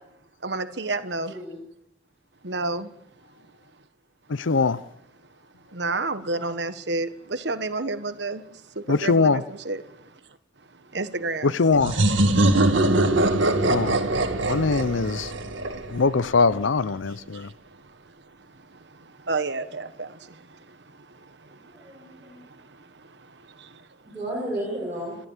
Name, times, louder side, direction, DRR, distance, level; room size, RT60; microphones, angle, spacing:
voice 1, 0.4-1.4 2.4-2.9 5.7-10.2 10.9-11.6 12.7-14.5 14.9-15.2 17.1-23.9, right 3 dB, 65° right, 1.3 m, -33 dB
voice 2, 1.3-1.6 21.7-22.4 24.0-25.2, right 1 dB, 10° right, 6.9 m, -33 dB
voice 3, 4.3-4.8 8.9-9.4 11.4-11.9 13.7-14.0 14.5-15.3 15.9-17.5, left 4 dB, 90° left, 0.7 m, -22 dB
sound 1, 11.8-16.4, right 1 dB, 85° right, 2.2 m, -22 dB
27.5 x 13.0 x 7.3 m
head